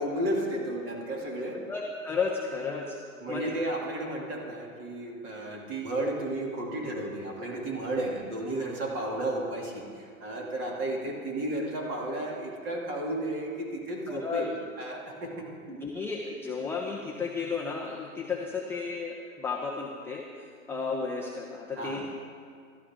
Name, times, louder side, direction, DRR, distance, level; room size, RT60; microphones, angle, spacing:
voice 1, 0.0-1.7 3.2-15.5 21.8-22.0, right 1 dB, 30° right, -1 dB, 2.7 m, -33 dB
voice 2, 1.7-3.0 3.3-3.6 14.1-14.5 15.7-22.0, left 5 dB, 5° left, -1 dB, 0.5 m, -33 dB
17.0 x 13.0 x 3.7 m, 2.3 s
hypercardioid pair, 135°, 42 cm